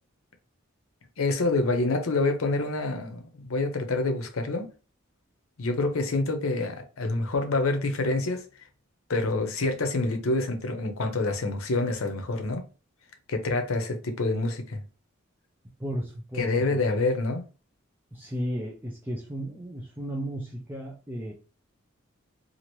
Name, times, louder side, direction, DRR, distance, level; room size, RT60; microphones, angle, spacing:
voice 1, 1.2-4.7 5.6-8.4 9.1-12.6 13.3-14.8 16.4-17.4, left 2 dB, 80° left, 0.7 m, -27 dB
voice 2, 15.8-16.8 18.1-21.3, equal, 10° right, 0.4 m, -34 dB
2.8 x 2.5 x 2.9 m
head